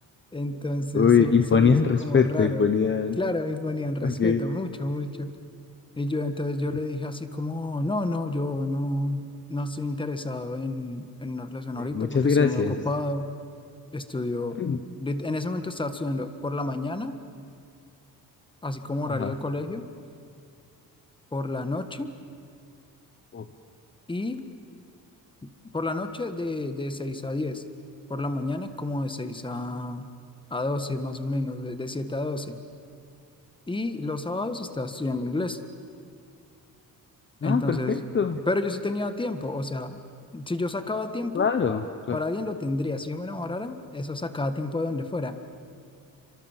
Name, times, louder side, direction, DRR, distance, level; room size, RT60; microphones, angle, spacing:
voice 1, 0.3-2.7 3.2-5.3 6.0-13.3 13.9-17.2 18.6-19.9 21.3-22.1 24.1-24.4 25.4-27.6 28.1-30.1 30.5-32.6 33.7-35.6 37.4-38.0 38.5-40.0 40.3-41.5 42.1-45.4, left 2 dB, 15° left, 9 dB, 1.5 m, -30 dB
voice 2, 0.9-3.2 4.0-4.4 11.8-12.7 14.6-14.8 19.1-19.3 23.3-23.4 37.4-38.4 41.3-42.2, left 6 dB, 30° left, 8 dB, 1.0 m, -22 dB
29.5 x 25.0 x 7.4 m, 2.4 s
cardioid pair, 140°, 38 cm